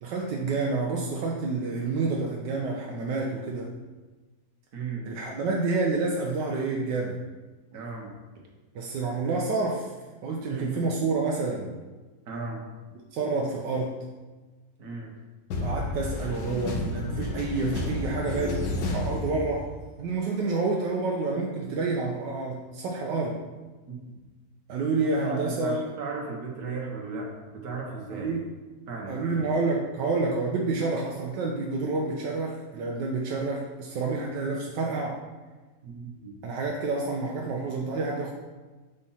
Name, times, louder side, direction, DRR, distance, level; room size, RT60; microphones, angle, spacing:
voice 1, 0.0-3.7 5.1-7.2 8.7-9.9 10.2-11.7 13.1-14.0 15.6-19.7 20.0-23.4 24.7-25.9 28.2-28.4 29.1-35.2 36.4-38.3, right 3 dB, 80° right, -1 dB, 1.3 m, -28 dB
voice 2, 4.7-5.1 7.7-8.1 10.5-10.8 12.3-12.7 14.8-15.1 23.9-24.2 25.2-28.4 28.9-29.2 35.8-36.4, right 4 dB, 65° right, -1 dB, 1.7 m, -36 dB
sound 1, 15.5-20.0, left 2 dB, 80° left, 1.4 m, -31 dB
5.1 x 4.3 x 5.6 m, 1.3 s
omnidirectional pair, 1.9 m